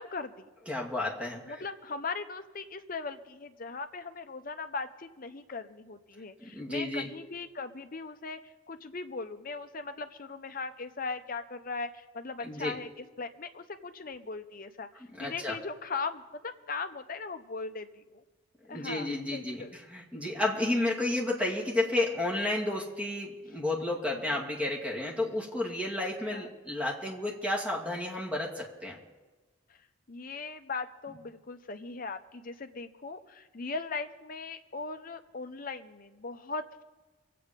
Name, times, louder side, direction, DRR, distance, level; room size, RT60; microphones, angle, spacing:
voice 1, 0.0-0.5 1.5-8.4 8.7-14.9 15.2-18.2 18.7-19.8 20.6-20.7 24.1-24.4 26.2-26.5 30.1-36.8, left 4 dB, 45° left, 8 dB, 0.8 m, -39 dB
voice 2, 0.7-1.6 6.4-7.1 12.4-12.7 15.2-15.6 18.7-29.0, left 2 dB, 5° right, -2 dB, 2.3 m, -32 dB
24.0 x 8.6 x 5.2 m, 1.2 s
head